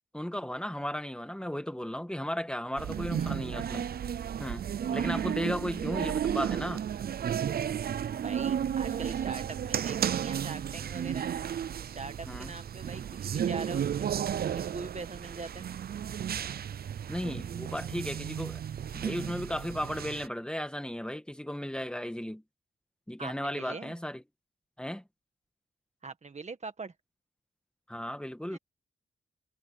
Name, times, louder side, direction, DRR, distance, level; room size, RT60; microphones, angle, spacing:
voice 1, 0.1-3.9 4.4-4.6 4.9-6.8 12.3-12.5 17.1-18.6 18.9-22.4 23.1-24.2 24.8-25.0 27.9-28.6, equal, 5° left, 1.8 m, -35 dB
sound 1, 2.8-20.3, right 9 dB, 60° right, 0.5 m, -33 dB
voice 2, 8.2-11.3 11.8-14.1 14.5-15.7 23.2-24.0 26.0-26.9 28.5-28.6, right 4 dB, 40° right, 1.8 m, -42 dB
wide cardioid pair, 100°, 18 cm